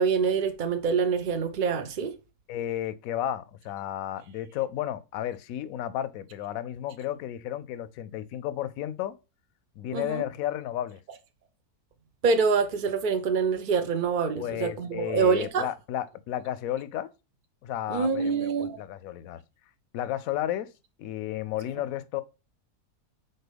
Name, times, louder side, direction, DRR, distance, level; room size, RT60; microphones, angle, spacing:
voice 1, 0.0-2.2 9.9-10.2 12.2-15.7 17.9-18.8, right 5 dB, 70° right, 0.4 m, -25 dB
voice 2, 2.5-9.2 9.8-11.0 14.4-17.1 17.6-19.4 19.9-20.7 21.0-22.2, left 12 dB, 70° left, 0.9 m, -33 dB
4.5 x 4.2 x 5.0 m
omnidirectional pair, 1.7 m